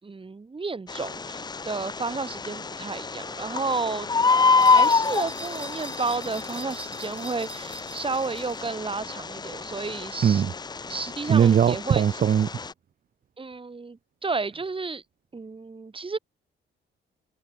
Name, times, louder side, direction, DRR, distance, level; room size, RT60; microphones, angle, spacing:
voice 1, 0.0-4.1 4.7-10.4 10.9-12.0 13.4-15.0 15.3-16.2, right 4 dB, 25° right, 4.4 m, -32 dB
Bird, 0.9-12.7, left 4 dB, 20° left, 0.6 m, -27 dB
sound 1, 4.6-8.7, right 1 dB, 5° right, 2.3 m, -42 dB
voice 2, 10.2-10.5 11.3-12.5, right 8 dB, 45° right, 0.8 m, -20 dB
cardioid pair, 90°, 20 cm